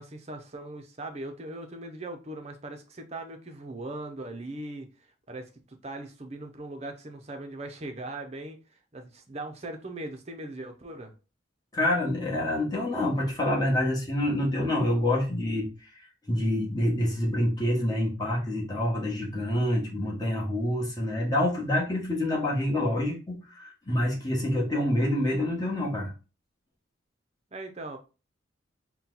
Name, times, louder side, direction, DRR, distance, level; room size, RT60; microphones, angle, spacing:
voice 1, 0.0-4.9 5.3-11.1 27.5-28.0, right 2 dB, 35° right, 0.6 m, -39 dB
voice 2, 11.7-15.9 16.2-26.1, left 1 dB, 20° left, 1.3 m, -27 dB
4.2 x 2.3 x 3.9 m
head